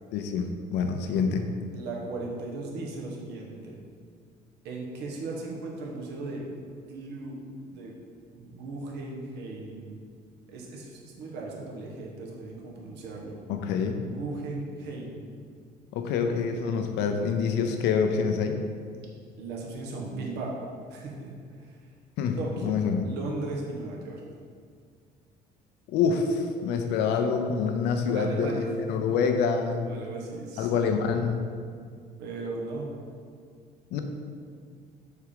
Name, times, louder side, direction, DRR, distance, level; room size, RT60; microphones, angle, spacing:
voice 1, 0.1-1.4 13.5-14.0 15.9-18.6 22.2-23.0 25.9-29.9 30.6-31.4 33.9-34.0, left 5 dB, 85° left, 5 dB, 0.6 m, -26 dB
voice 2, 1.7-3.8 4.6-6.5 6.9-7.9 8.3-10.0 10.5-13.4 14.1-15.2 16.2-16.3 19.4-20.6 20.9-21.3 21.6-21.8 22.4-24.2 28.0-28.7 29.1-29.2 29.8-30.9 32.2-33.0, right 3 dB, 80° right, -1 dB, 1.3 m, -37 dB
6.5 x 3.6 x 5.0 m, 2.1 s
cardioid pair, 110°, 17 cm